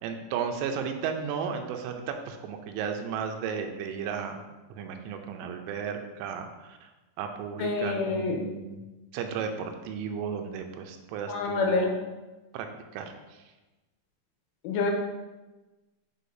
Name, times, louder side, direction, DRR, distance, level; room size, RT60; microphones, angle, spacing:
voice 1, 0.0-4.4 4.7-6.9 7.2-8.8 9.1-11.9 12.5-12.7 12.9-13.1, right 7 dB, 85° right, 5 dB, 3.1 m, -34 dB
voice 2, 7.6-8.4 11.3-11.9 14.6-14.9, left 4 dB, 85° left, 1 dB, 3.4 m, -27 dB
10.0 x 4.9 x 2.6 m, 1.1 s
omnidirectional pair, 5.6 m